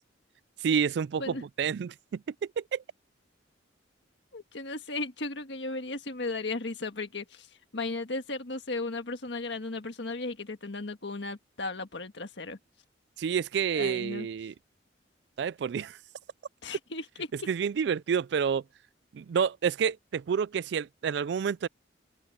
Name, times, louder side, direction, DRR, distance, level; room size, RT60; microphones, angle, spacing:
voice 1, 0.6-2.2 2.6-2.8 13.2-14.5 15.4-16.0 17.5-18.6 19.1-21.7, right 7 dB, 65° right, 0.3 m, -29 dB
voice 2, 4.3-7.5 7.7-12.6 13.7-14.3 16.6-17.5, left 3 dB, 70° left, 1.6 m, -35 dB
open air
head